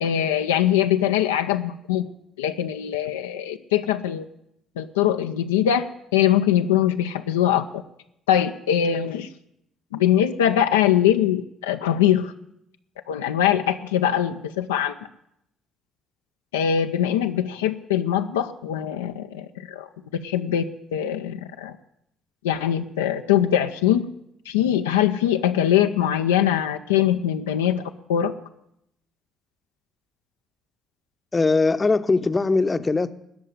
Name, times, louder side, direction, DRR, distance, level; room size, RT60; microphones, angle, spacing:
voice 1, 0.0-2.1 2.4-4.2 4.8-5.9 6.1-7.8 8.3-9.3 9.9-12.3 13.1-14.9 16.5-19.9 20.1-20.6 20.9-21.8 22.4-24.1 24.5-28.3, left 10 dB, 80° left, 6 dB, 0.6 m, -22 dB
voice 2, 31.3-33.1, left 3 dB, 25° left, 12 dB, 0.8 m, -20 dB
19.5 x 6.5 x 9.5 m, 0.77 s
figure-of-eight pair, 50°, 0 cm